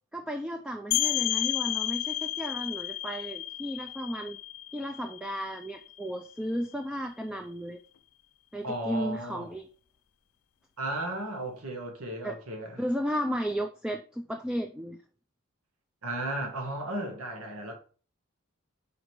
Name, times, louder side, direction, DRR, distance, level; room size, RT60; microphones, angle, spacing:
voice 1, 0.1-4.4 4.7-7.8 8.5-9.7 12.2-12.4 12.8-15.0, equal, 5° right, 0.3 m, -34 dB
sound 1, 0.9-6.4, left 14 dB, 85° left, 0.4 m, -32 dB
voice 2, 8.6-9.5 10.8-12.8 16.0-17.7, right 1 dB, 90° right, 1.6 m, -35 dB
5.1 x 5.0 x 4.7 m
head